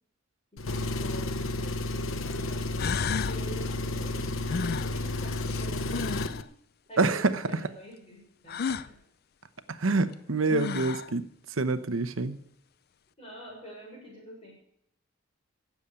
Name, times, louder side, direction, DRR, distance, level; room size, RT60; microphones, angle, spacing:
voice 1, 0.5-2.7 3.2-6.5 6.9-9.0 13.2-14.5, right 1 dB, 30° left, -1 dB, 6.5 m, -46 dB
Engine, 0.6-6.4, left 2 dB, 75° left, 0.8 m, -32 dB
sound 1, 2.3-2.4 2.8-3.4 4.5-6.4 8.5-8.9 10.1-10.2 10.5-11.1, left 6 dB, 50° left, 0.4 m, -33 dB
voice 2, 7.0-7.4 9.7-11.2 11.6-12.4, right 3 dB, 75° right, 11 dB, 0.9 m, -26 dB
16.5 x 7.3 x 8.7 m, 0.75 s
head